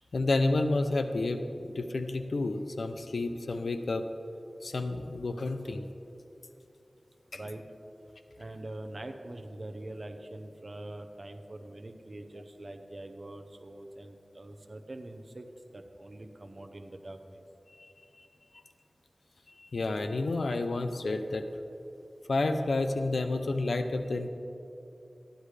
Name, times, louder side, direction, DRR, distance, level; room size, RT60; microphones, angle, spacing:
voice 1, 0.1-4.0 4.6-5.9 7.3-7.4 17.8-17.9 19.6-21.4 22.3-24.3, left 2 dB, 85° left, 8 dB, 0.6 m, -30 dB
voice 2, 7.3-7.6 8.4-15.5 15.7-17.4, right 1 dB, 50° right, 6 dB, 0.7 m, -44 dB
13.5 x 10.5 x 3.3 m, 2.8 s
wide cardioid pair, 75°, 0 cm